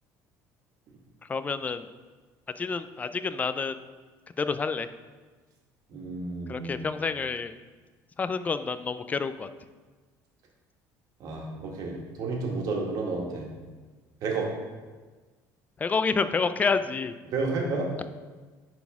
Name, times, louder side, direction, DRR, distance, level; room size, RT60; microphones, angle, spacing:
voice 1, 1.3-1.9 2.6-3.8 4.4-4.9 6.5-7.6 8.2-9.5 15.8-17.1, left 5 dB, 20° left, 12 dB, 0.3 m, -28 dB
voice 2, 5.9-6.9 11.2-13.5 14.2-14.5 17.3-17.9, right 3 dB, 55° right, -1 dB, 1.7 m, -31 dB
10.0 x 4.1 x 3.6 m, 1.3 s
cardioid pair, 125°, 7 cm